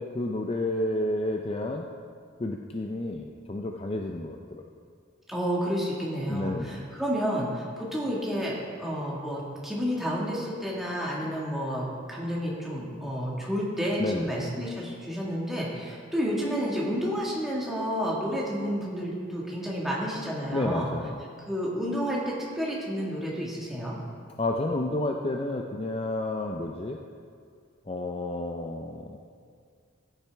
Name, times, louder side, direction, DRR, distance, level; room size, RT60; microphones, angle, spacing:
voice 1, 0.0-1.9 2.4-4.6 6.3-6.9 14.0-14.3 20.5-21.2 24.4-27.0 27.9-29.2, left 2 dB, 25° left, 2 dB, 0.4 m, -31 dB
voice 2, 5.3-20.9 21.5-24.0, equal, ahead, -5 dB, 1.7 m, -30 dB
14.5 x 9.0 x 3.4 m, 2.2 s
head